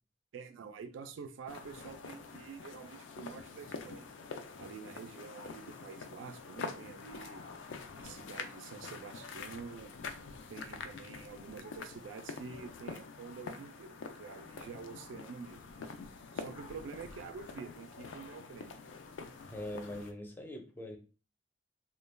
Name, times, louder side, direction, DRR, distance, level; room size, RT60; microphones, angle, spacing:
voice 1, 0.3-4.1 4.6-7.4 7.9-9.9 10.5-15.9 16.3-18.8, right 5 dB, 90° right, 0.3 m, -48 dB
sound 1, 1.5-20.1, left 4 dB, 85° left, 0.4 m, -46 dB
voice 2, 19.4-21.0, left 1 dB, 10° left, 0.4 m, -42 dB
2.2 x 2.2 x 3.1 m
head